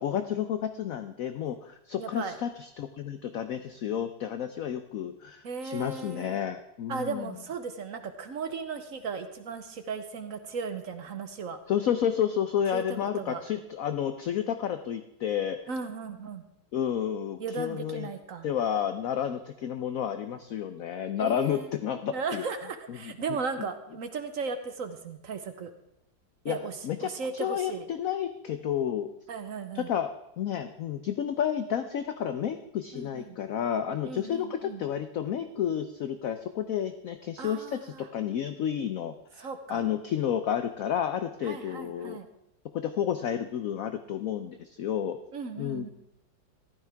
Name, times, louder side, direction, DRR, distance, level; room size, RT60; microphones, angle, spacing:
voice 1, 0.0-7.3 11.7-15.6 16.7-18.1 18.4-22.4 22.9-23.1 26.4-26.6 26.8-27.1 27.4-29.1 29.7-30.1 30.4-42.2 42.7-45.2 45.6-45.9, left 9 dB, 65° left, 9 dB, 0.8 m, -31 dB
voice 2, 2.0-2.4 5.4-6.4 6.9-11.6 12.7-13.4 15.7-16.4 17.4-18.5 21.2-21.7 22.1-25.7 26.5-27.9 29.3-29.9 32.9-33.4 34.0-34.8 37.4-38.1 39.4-39.8 41.4-42.3 45.3-45.9, right 5 dB, 55° right, 8 dB, 1.1 m, -36 dB
14.5 x 12.5 x 3.4 m, 0.85 s
omnidirectional pair, 2.0 m